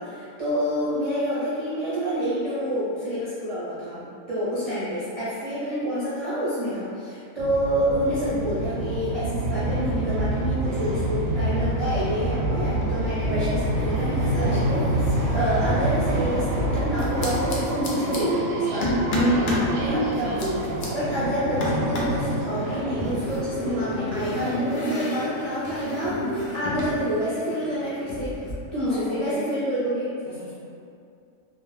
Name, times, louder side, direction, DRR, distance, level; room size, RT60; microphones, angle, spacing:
voice 1, 0.0-20.6 20.9-28.3 28.7-30.1, equal, 45° right, -12 dB, 0.4 m, -28 dB
sound 1, 7.4-24.7, right 1 dB, 80° right, 1.0 m, -27 dB
sound 2, 12.5-13.1 13.4-16.0 17.0-18.2 18.8-19.7 20.1-20.9 21.6-22.2 23.0-27.0 27.2-28.5, left 1 dB, 80° left, 0.4 m, -30 dB
voice 2, 28.8-29.5 30.2-30.5, left 1 dB, 45° left, -12 dB, 0.8 m, -40 dB
2.4 x 2.1 x 3.1 m, 2.4 s
omnidirectional pair, 1.4 m